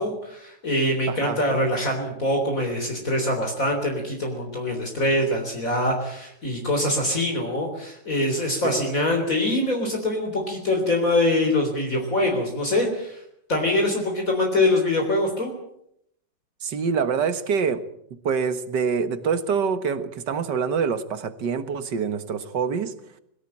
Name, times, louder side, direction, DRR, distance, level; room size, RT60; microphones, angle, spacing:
voice 1, 0.0-13.2 13.5-15.5, left 1 dB, 50° left, 4.0 m, -24 dB
voice 2, 1.1-1.4 8.6-8.8 16.6-17.8 18.1-22.9, right 6 dB, 70° right, 2.1 m, -25 dB
22.5 x 16.5 x 8.7 m
omnidirectional pair, 1.9 m